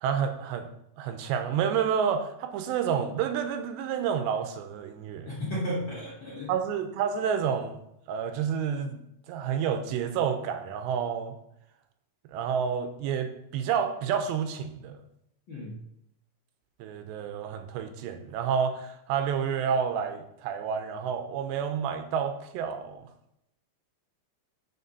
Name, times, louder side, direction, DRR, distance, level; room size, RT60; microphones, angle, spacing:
voice 1, 0.0-0.7 1.0-5.3 6.5-7.8 8.1-9.0 9.3-11.4 12.3-14.9 16.8-23.1, right 7 dB, 85° right, 7 dB, 2.9 m, -29 dB
voice 2, 5.2-6.5 15.5-15.8, equal, 50° left, -6 dB, 1.5 m, -33 dB
6.8 x 6.8 x 5.4 m, 0.79 s
omnidirectional pair, 5.1 m